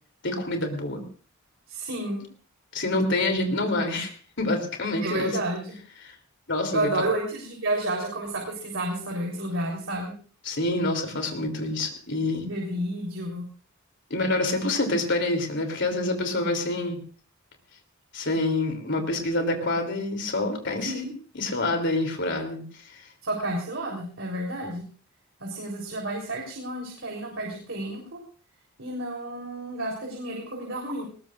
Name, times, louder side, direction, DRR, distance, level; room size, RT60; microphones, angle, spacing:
voice 1, 0.2-1.0 2.7-5.3 6.5-7.0 10.4-12.4 14.1-17.0 18.1-20.9 21.3-22.6, left 2 dB, 60° left, 4 dB, 3.2 m, -27 dB
voice 2, 1.7-2.2 5.0-5.8 6.7-10.1 12.4-13.4 20.8-21.1 23.2-24.8 25.4-28.2 28.8-31.1, right 1 dB, 65° right, -1 dB, 3.9 m, -31 dB
20.0 x 19.5 x 2.5 m, 0.42 s
head